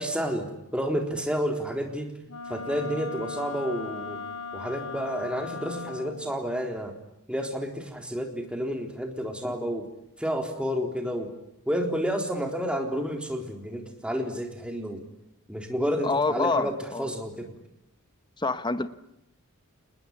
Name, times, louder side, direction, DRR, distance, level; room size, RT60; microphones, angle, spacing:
voice 1, 0.0-2.1 2.5-4.2 4.5-6.9 7.3-9.8 10.2-11.3 11.7-15.0 15.5-16.7 17.0-17.5, equal, 5° right, 3 dB, 3.8 m, -30 dB
Wind instrument woodwind instrument, 2.3-6.3, left 4 dB, 85° left, 2.7 m, -38 dB
voice 2, 16.0-17.1 18.4-18.9, left 3 dB, 20° left, 12 dB, 1.0 m, -27 dB
27.0 x 20.5 x 9.8 m, 0.84 s
head